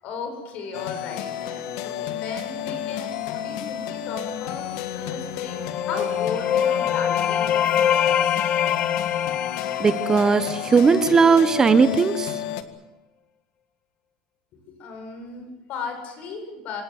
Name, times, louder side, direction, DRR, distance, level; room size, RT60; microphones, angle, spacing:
voice 1, 0.0-8.4 14.7-16.8, left 4 dB, 55° left, 6 dB, 8.0 m, -36 dB
sound 1, 0.7-12.6, left 12 dB, 80° left, 1.8 m, -31 dB
sound 2, 5.3-11.0, left 9 dB, 40° left, 1.1 m, -24 dB
voice 2, 9.8-12.4, right 5 dB, 20° right, 12 dB, 1.0 m, -18 dB
26.5 x 18.5 x 8.0 m, 1.1 s
supercardioid pair, 125°, 3 cm